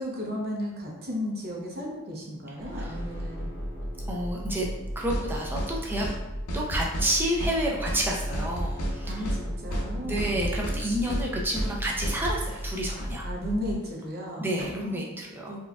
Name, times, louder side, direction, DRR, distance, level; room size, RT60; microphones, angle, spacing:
voice 1, 0.0-3.5 9.1-10.5 13.2-14.5 14.8-15.0 15.5-15.6, equal, 45° right, -2 dB, 0.7 m, -34 dB
sound 1, 2.6-13.7, equal, 15° left, 0.9 m, -35 dB
voice 2, 4.1-4.7 5.0-6.1 6.5-9.2 10.0-13.3 14.4-15.6, right 1 dB, 10° right, -2 dB, 0.5 m, -29 dB
sound 2, 5.1-5.3 5.6-5.7 6.0-6.2 6.5-7.1 7.4-7.6 7.9-8.0 8.3-9.0 9.3-9.4 9.7-9.9 10.2-10.8 11.1-11.3 11.6-11.7 12.0-12.4, right 1 dB, 85° left, 0.7 m, -31 dB
sound 3, 7.3-8.3 9.1-9.2 9.7-13.8 14.6-15.0, equal, 65° right, 1.5 m, -47 dB
4.1 x 2.3 x 2.3 m, 1.0 s
head